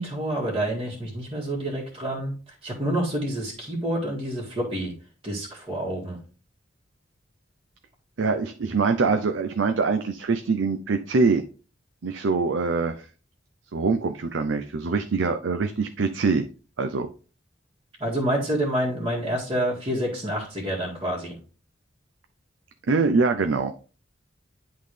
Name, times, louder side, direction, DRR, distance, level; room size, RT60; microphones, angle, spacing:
voice 1, 0.0-4.9 5.2-6.2 18.0-21.4, right 1 dB, 30° right, -5 dB, 1.9 m, -28 dB
voice 2, 8.2-11.4 12.0-13.1 13.7-16.5 16.8-17.1 22.9-23.7, right 4 dB, 75° right, 7 dB, 0.6 m, -24 dB
10.5 x 3.8 x 3.2 m, 0.37 s
head